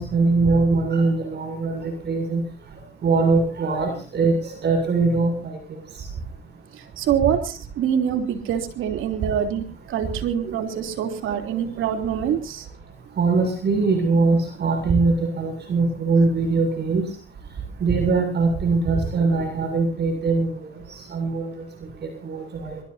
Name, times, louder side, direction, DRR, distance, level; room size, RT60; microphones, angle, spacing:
voice 1, 0.0-2.4 3.0-5.8 10.4-10.5 13.2-17.0 17.8-20.7 21.1-21.6 22.0-22.8, right 3 dB, 60° right, 4 dB, 6.8 m, -22 dB
voice 2, 6.7-12.7, right 9 dB, 85° right, 6 dB, 3.2 m, -25 dB
23.5 x 22.5 x 2.7 m, 0.36 s
cardioid pair, 90°, 20 cm